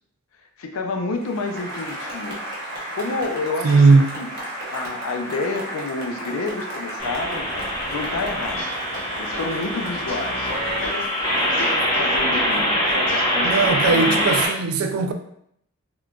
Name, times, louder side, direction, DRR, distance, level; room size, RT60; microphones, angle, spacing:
voice 1, 0.6-2.4 2.7-4.3 4.7-8.7 9.2-14.4, left 3 dB, 80° left, 0.5 m, -30 dB
Applause, 1.2-12.7, equal, 50° right, 0.8 m, -34 dB
voice 2, 3.6-4.2 13.4-15.1, right 4 dB, 80° right, 0.4 m, -17 dB
sound 1, 7.0-14.5, equal, 20° left, 1.0 m, -24 dB
sound 2, 8.6-14.6, left 1 dB, 60° left, 1.0 m, -39 dB
3.6 x 2.4 x 2.2 m
head